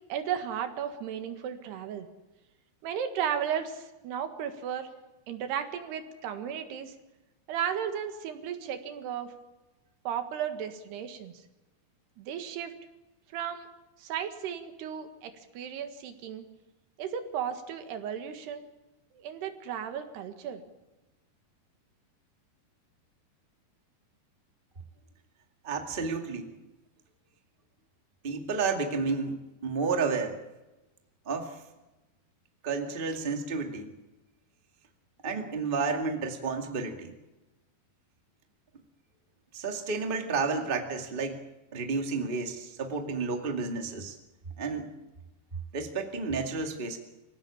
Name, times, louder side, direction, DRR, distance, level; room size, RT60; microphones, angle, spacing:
voice 1, 0.1-2.1 2.8-4.9 5.3-7.0 7.5-9.3 10.1-11.4 12.2-12.7 13.3-13.7 14.0-16.5 17.0-18.7 19.1-20.6, right 8 dB, 85° right, 7 dB, 3.8 m, -34 dB
voice 2, 25.6-26.5 28.2-30.4 31.2-31.5 32.6-33.9 35.2-37.1 39.5-41.3 41.7-44.1 44.6-44.9 45.7-47.0, right 4 dB, 20° right, 4 dB, 1.3 m, -31 dB
24.5 x 16.5 x 8.6 m, 1.0 s
omnidirectional pair, 4.6 m